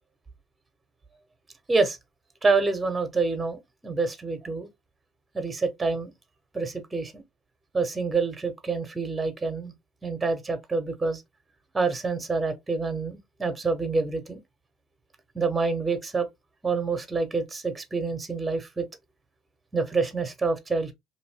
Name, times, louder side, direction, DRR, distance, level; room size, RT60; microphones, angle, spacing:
voice 1, 2.4-4.7 5.3-6.1 6.5-6.7 6.9-7.0 7.7-9.7 10.0-11.2 11.7-14.4 15.3-16.3 16.6-18.9 19.7-20.9, right 4 dB, 20° right, 1.0 m, -27 dB
2.7 x 2.5 x 3.4 m
hypercardioid pair, 70°, 0 cm